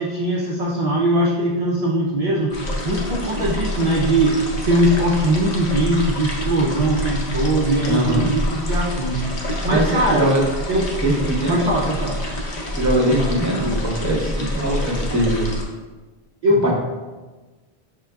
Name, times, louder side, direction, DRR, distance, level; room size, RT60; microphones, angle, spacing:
voice 1, 0.0-2.6 2.8-9.3 9.6-10.3 10.7-10.9 11.5-12.2 16.4-16.7, right 1 dB, 50° right, -3 dB, 0.4 m, -20 dB
sound 1, 2.5-15.6, left 1 dB, 45° left, 0.7 m, -27 dB
voice 2, 7.9-8.3 9.7-10.4 11.0-11.5 12.7-15.5 16.6-16.7, right 1 dB, 20° right, -2 dB, 0.7 m, -21 dB
6.1 x 3.6 x 2.2 m, 1.2 s
omnidirectional pair, 1.1 m